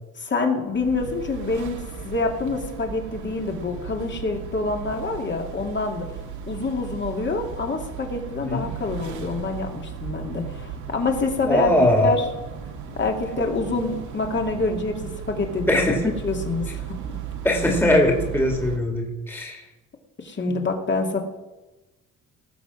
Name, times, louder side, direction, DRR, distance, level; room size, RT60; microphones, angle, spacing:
voice 1, 0.2-6.0 6.5-12.2 13.0-15.8 16.2-17.0 20.2-21.2, left 3 dB, 40° left, 2 dB, 2.5 m, -26 dB
sound 1, 0.7-18.8, right 7 dB, 75° right, 1.9 m, -36 dB
voice 2, 11.5-12.1 15.7-16.1 17.4-19.6 20.5-20.6, left 1 dB, 5° left, 1 dB, 2.3 m, -21 dB
19.0 x 7.1 x 6.2 m, 1.1 s
cardioid pair, 90°, 30 cm